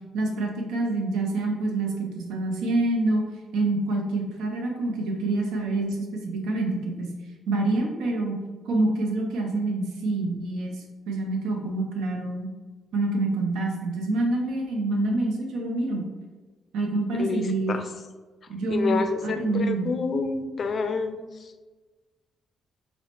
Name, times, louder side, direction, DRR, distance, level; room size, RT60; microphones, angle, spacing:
voice 1, 0.1-3.3 3.5-7.1 7.5-8.4 8.6-12.5 12.9-16.0 16.7-17.8 18.5-19.9, right 2 dB, 85° right, 1 dB, 0.6 m, -26 dB
voice 2, 17.2-17.8 18.7-21.5, left 4 dB, 50° left, 7 dB, 0.3 m, -28 dB
4.2 x 2.1 x 2.9 m, 1.3 s
cardioid pair, 90°, 0 cm